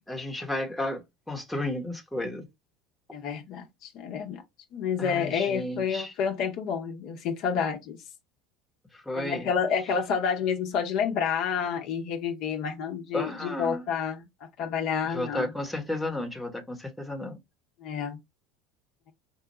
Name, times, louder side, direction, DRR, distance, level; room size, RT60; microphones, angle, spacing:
voice 1, 0.1-2.5 5.0-6.1 8.9-9.5 13.1-13.9 15.0-17.4, left 1 dB, 5° left, 1.0 m, -33 dB
voice 2, 3.1-4.4 4.7-8.0 9.1-14.3 14.6-15.5 17.8-18.2, left 7 dB, 50° left, 0.8 m, -29 dB
4.5 x 2.2 x 2.9 m
figure-of-eight pair, 70°, 0 cm